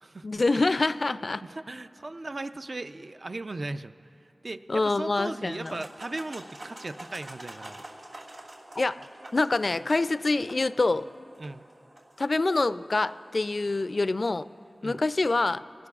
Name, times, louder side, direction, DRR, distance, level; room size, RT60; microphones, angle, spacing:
voice 1, 0.2-1.4 4.7-5.8 8.8-9.0 9.3-11.1 12.2-14.5 14.8-15.7, left 3 dB, 55° left, 14 dB, 0.3 m, -26 dB
voice 2, 1.3-3.9 4.2-7.8 11.4-11.6 14.8-15.0, right 2 dB, 55° right, 9 dB, 0.4 m, -37 dB
sound 1, 5.4-14.5, right 1 dB, 85° right, 2.6 m, -48 dB
26.5 x 18.0 x 2.4 m, 2.8 s
wide cardioid pair, 55°, 0 cm